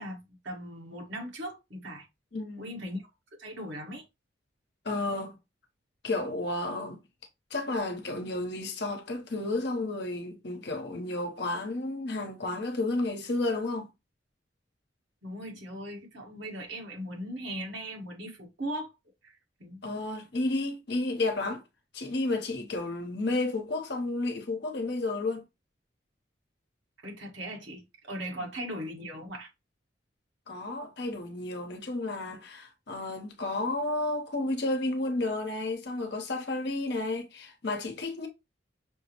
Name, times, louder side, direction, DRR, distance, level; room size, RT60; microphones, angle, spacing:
voice 1, 0.0-2.1 2.6-3.0 3.4-4.0 15.2-18.9 19.2-19.3 19.6-19.8 27.0-29.5, equal, 75° right, 1.4 m, -38 dB
voice 2, 2.3-2.7 4.8-5.4 6.0-7.0 7.5-13.9 19.8-21.6 21.9-25.4 28.4-28.5 30.5-38.3, left 2 dB, 60° left, 0.8 m, -32 dB
5.9 x 2.0 x 2.9 m
head